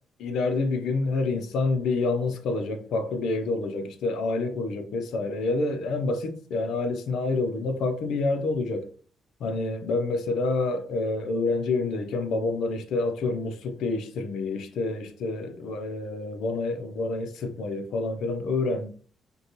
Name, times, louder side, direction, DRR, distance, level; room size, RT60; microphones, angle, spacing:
voice 1, 0.2-8.9 9.4-18.9, left 3 dB, 80° left, 0.6 m, -28 dB
5.2 x 2.3 x 3.0 m
cardioid pair, 90°, 0 cm